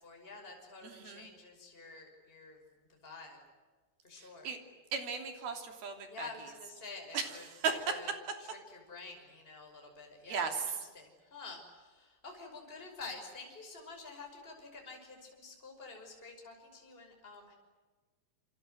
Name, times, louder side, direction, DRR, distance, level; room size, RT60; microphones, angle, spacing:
voice 1, 0.0-2.6 2.9-3.4 4.0-4.5 6.1-8.1 8.4-17.5, left 4 dB, 15° left, 2 dB, 5.8 m, -49 dB
voice 2, 0.8-1.3 4.2-4.6 4.9-6.3 7.1-7.4 7.6-7.7 10.3-10.6, right 6 dB, 65° right, 5 dB, 4.8 m, -36 dB
28.5 x 26.5 x 8.0 m, 1.3 s
omnidirectional pair, 4.8 m